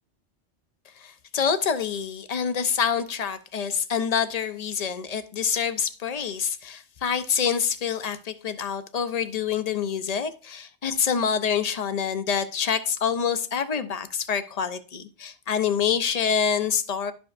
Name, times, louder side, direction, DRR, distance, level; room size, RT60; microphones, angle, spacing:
voice 1, 1.0-17.1, left 7 dB, 50° left, 0.5 m, -26 dB
11.5 x 5.1 x 2.4 m
omnidirectional pair, 1.2 m